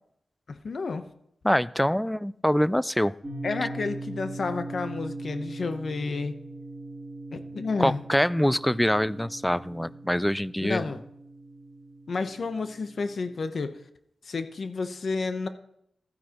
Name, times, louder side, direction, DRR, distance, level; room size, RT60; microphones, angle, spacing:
voice 1, 0.5-1.0 3.4-6.3 7.3-8.0 10.6-11.0 12.1-13.8 14.2-15.5, left 4 dB, 65° left, 9 dB, 0.9 m, -31 dB
voice 2, 1.4-3.1 7.8-10.8, equal, 5° left, 18 dB, 0.4 m, -24 dB
sound 1, 3.2-13.4, right 2 dB, 15° right, 2.6 m, -40 dB
14.5 x 9.4 x 3.0 m, 0.74 s
wide cardioid pair, 80°, 0 cm